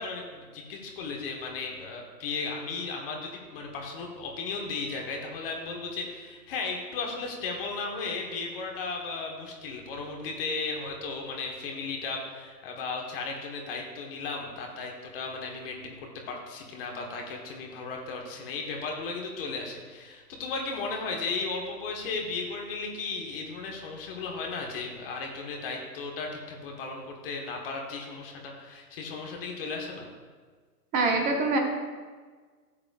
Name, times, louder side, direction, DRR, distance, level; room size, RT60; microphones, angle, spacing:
voice 1, 0.0-16.0 16.3-30.1, left 4 dB, 35° left, 1 dB, 1.5 m, -35 dB
voice 2, 30.9-31.6, right 3 dB, 15° right, 3 dB, 0.9 m, -24 dB
14.5 x 7.6 x 2.5 m, 1.5 s
figure-of-eight pair, 120°, 49 cm